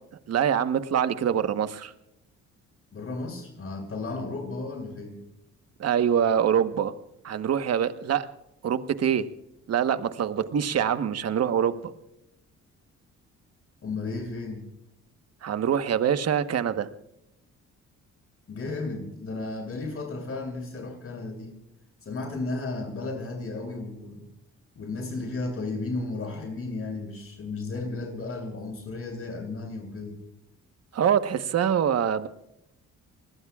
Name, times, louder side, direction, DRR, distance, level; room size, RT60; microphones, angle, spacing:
voice 1, 0.3-1.9 5.8-6.9 7.2-8.3 8.6-9.3 9.7-11.8 15.4-16.9 30.9-32.3, right 8 dB, 55° right, 10 dB, 1.3 m, -24 dB
voice 2, 2.9-5.2 13.8-14.7 18.5-21.5 22.0-24.3 24.8-30.2, left 3 dB, 45° left, 2 dB, 7.8 m, -34 dB
28.0 x 20.5 x 2.4 m, 0.86 s
cardioid pair, 90°, 30 cm